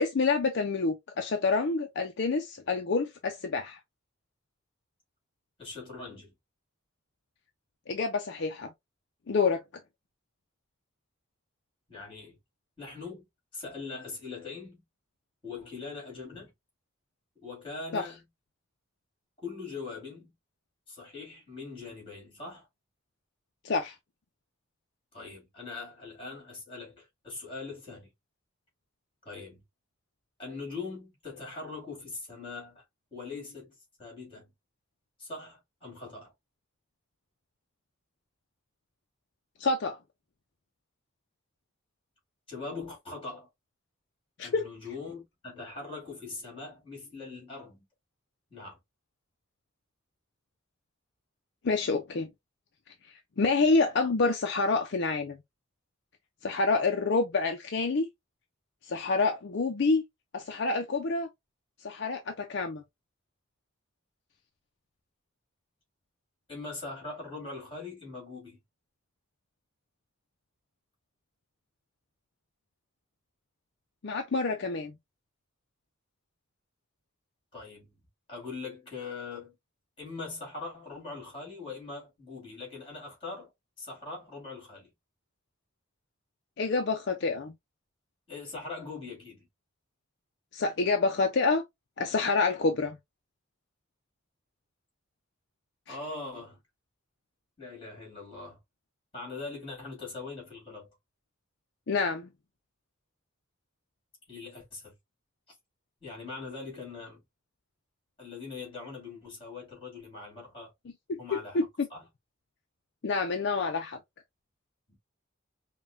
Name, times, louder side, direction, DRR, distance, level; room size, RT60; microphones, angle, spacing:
voice 1, 0.0-3.8 7.9-8.7 9.3-9.6 17.9-18.0 23.6-24.0 39.6-40.0 44.4-44.7 51.6-52.3 53.1-55.4 56.4-58.1 58.8-60.0 60.3-61.3 61.8-62.8 74.0-74.9 86.6-87.5 90.5-91.6 92.0-93.0 95.9-96.0 101.9-102.3 111.3-111.9 113.0-114.0, left 4 dB, 55° left, 0.5 m, -27 dB
voice 2, 5.6-6.3 11.9-12.4 12.8-13.3 13.5-14.8 15.4-16.5 17.4-18.2 19.4-20.3 20.9-22.7 25.1-28.1 29.2-29.6 30.4-32.8 33.1-34.5 35.2-36.3 42.5-43.5 44.4-47.8 48.5-48.8 66.5-68.6 77.5-77.9 78.3-79.5 80.0-83.5 83.8-84.9 88.3-89.5 95.9-96.6 97.6-98.6 99.1-100.9 104.3-104.9 106.0-107.2 108.2-110.7 111.2-112.1 114.9-115.0, left 3 dB, 25° left, 2.7 m, -41 dB
5.1 x 2.2 x 2.6 m
head